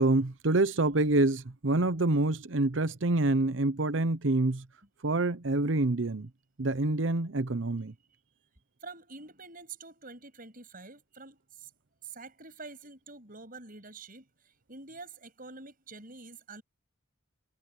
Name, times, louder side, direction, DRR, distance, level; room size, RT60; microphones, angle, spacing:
voice 1, 0.0-4.6 5.0-6.3 6.6-7.9, right 2 dB, 65° right, 0.9 m, -26 dB
voice 2, 8.8-11.7 12.0-14.3 14.7-16.6, right 3 dB, 45° right, 8.0 m, -47 dB
head